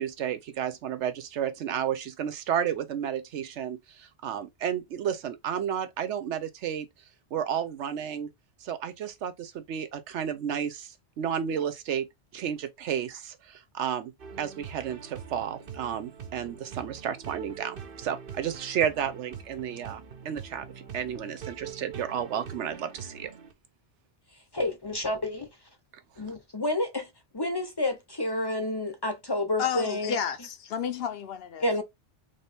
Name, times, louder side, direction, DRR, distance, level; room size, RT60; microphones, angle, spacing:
voice 1, 0.0-6.9 7.3-8.3 8.6-12.1 12.3-14.1 14.4-20.7 20.9-23.3, right 9 dB, 85° right, 1.0 m, -32 dB
sound 1, 14.2-23.5, right 7 dB, 55° right, 0.9 m, -43 dB
voice 2, 24.5-25.5 26.2-27.1 27.3-30.1 31.6-31.8, left 1 dB, 25° left, 0.6 m, -29 dB
voice 3, 29.6-31.7, left 7 dB, 65° left, 0.7 m, -31 dB
3.6 x 2.7 x 3.4 m
omnidirectional pair, 1.2 m